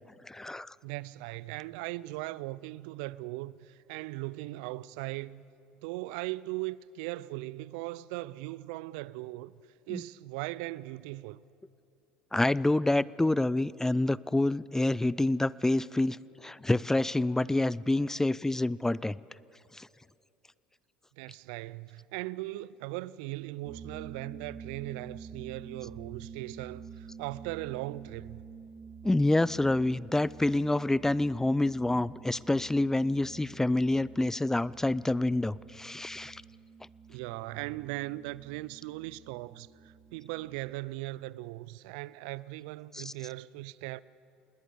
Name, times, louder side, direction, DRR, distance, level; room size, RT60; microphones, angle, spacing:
voice 1, 0.2-0.7 9.9-10.0 12.3-19.2 19.7-19.9 29.0-36.4 42.9-43.1, left 2 dB, 10° left, 0.5 m, -27 dB
voice 2, 0.8-5.4 5.7-9.5 9.9-11.4 21.2-28.4 37.1-44.0, right 19 dB, 70° right, 0.5 m, -39 dB
sound 1, 23.6-40.7, right 6 dB, 30° right, 1.8 m, -49 dB
27.0 x 20.0 x 6.9 m
hypercardioid pair, 65°, 5 cm